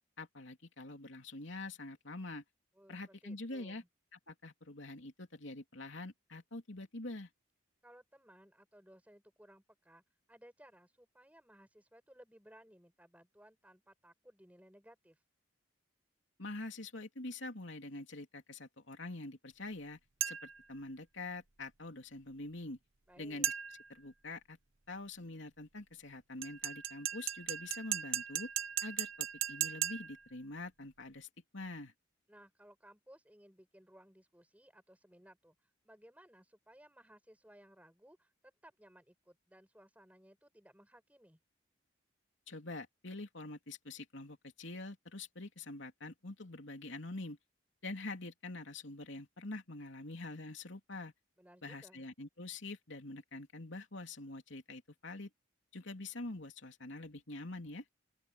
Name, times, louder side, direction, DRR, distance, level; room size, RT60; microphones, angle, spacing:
voice 1, 0.2-2.4 2.9-3.8 4.3-7.3 16.4-20.0 20.3-22.8 23.2-23.5 23.9-24.6 24.9-28.5 28.8-31.9 42.5-47.4 47.8-51.1 51.6-55.3 55.7-57.8, left 2 dB, 70° left, 3.0 m, -45 dB
voice 2, 2.7-3.9 7.8-10.0 10.3-15.2 23.1-23.5 32.3-41.4 51.4-52.0, equal, 5° right, 6.7 m, -60 dB
sound 1, 20.2-20.7 23.4-23.9 26.4-30.3, right 10 dB, 85° right, 1.3 m, -37 dB
open air
head